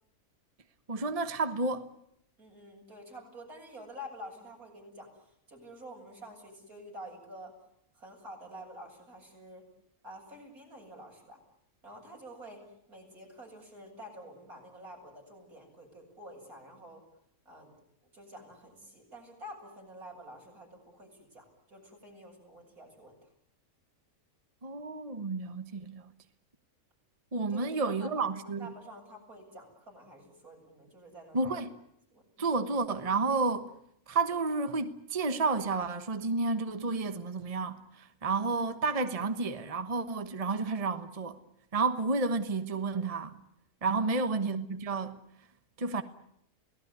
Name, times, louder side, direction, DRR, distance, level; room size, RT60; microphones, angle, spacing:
voice 1, 0.9-1.9 24.6-26.1 27.3-28.7 31.3-31.7 32.4-33.7 34.1-41.4 41.7-43.4 43.8-45.2 45.8-46.0, right 3 dB, 25° right, 1.2 m, -31 dB
voice 2, 2.4-7.6 7.9-9.7 10.0-11.4 11.8-17.0 17.4-17.7 18.1-23.3 27.5-31.6 32.1-32.2 44.0-44.5, equal, 80° right, 8.1 m, -49 dB
28.5 x 18.5 x 9.7 m
omnidirectional pair, 1.5 m